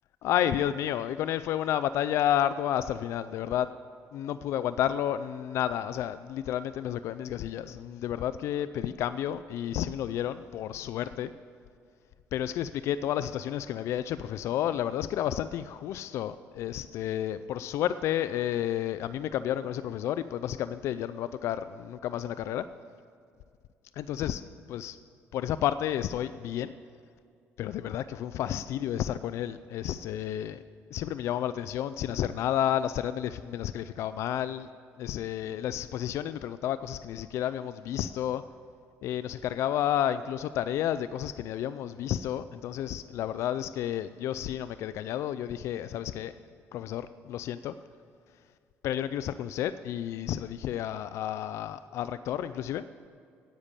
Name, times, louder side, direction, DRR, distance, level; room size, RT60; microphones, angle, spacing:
voice 1, 0.2-3.7 4.1-11.3 12.3-22.6 24.0-24.4 24.7-25.0 25.3-26.7 27.6-30.6 30.9-34.7 35.0-38.4 39.0-46.3 46.7-47.7 48.8-52.8, left 11 dB, 70° left, 13 dB, 0.3 m, -31 dB
10.5 x 8.8 x 8.2 m, 2.3 s
cardioid pair, 125°, 5 cm